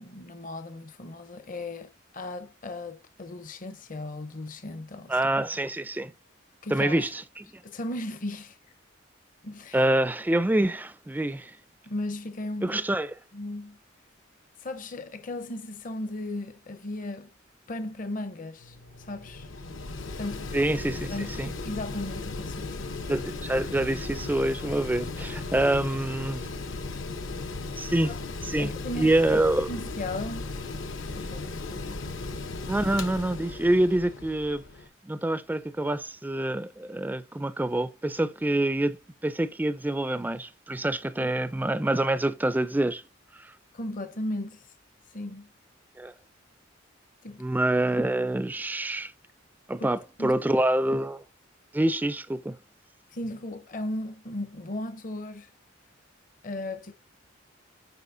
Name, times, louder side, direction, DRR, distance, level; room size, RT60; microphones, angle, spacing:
voice 1, 0.0-5.5 6.6-7.1 7.6-8.6 9.4-9.9 11.9-12.8 13.3-13.8 14.6-17.3 17.7-19.5 20.1-20.5 21.1-21.3 21.6-22.9 28.0-28.2 28.6-29.3 29.7-30.5 31.2-32.0 41.2-41.3 43.7-44.7 45.1-45.5 47.2-47.4 49.8-49.9 50.2-50.4 53.1-55.5 56.4-56.9, left 1 dB, 45° left, 0.6 m, -36 dB
voice 2, 5.1-6.1 6.7-7.5 9.7-11.6 12.6-13.1 20.5-21.5 23.1-26.4 27.8-28.1 28.4-28.7 29.0-29.7 32.2-32.4 32.7-34.6 35.0-43.0 43.4-43.5 46.0-46.1 47.4-49.1 49.7-51.2 51.7-52.6, right 1 dB, 10° right, 0.3 m, -26 dB
Mechanical fan, 18.6-34.9, left 3 dB, 75° left, 0.9 m, -36 dB
8.0 x 4.9 x 2.6 m
head